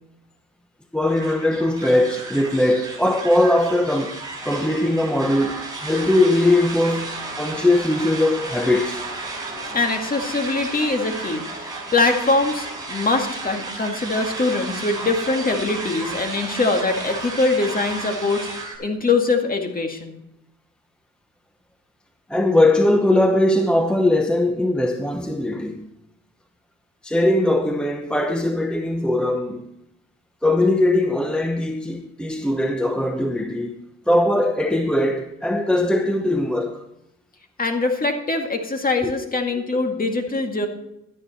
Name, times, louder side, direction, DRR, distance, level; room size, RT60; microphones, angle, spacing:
voice 1, 0.9-9.0 22.3-25.9 27.0-29.7 30.4-36.8 39.0-39.1, left 1 dB, 5° left, 0.8 m, -20 dB
sound 1, 1.1-18.8, right 3 dB, 15° right, 5.2 m, -33 dB
voice 2, 9.7-20.1 37.6-40.7, left 3 dB, 30° left, 2.0 m, -23 dB
12.0 x 10.0 x 4.3 m
cardioid pair, 90°, 30 cm